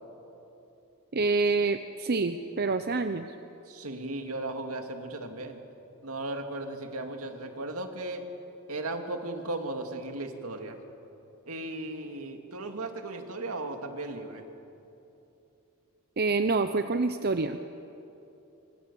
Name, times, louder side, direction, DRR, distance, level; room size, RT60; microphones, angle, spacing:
voice 1, 1.1-3.3 16.2-17.6, right 3 dB, 45° right, 9 dB, 0.7 m, -27 dB
voice 2, 3.7-5.6 6.0-8.3 8.7-10.8 11.5-14.4, right 2 dB, 75° right, 4 dB, 2.4 m, -36 dB
26.0 x 25.0 x 7.0 m, 2.9 s
head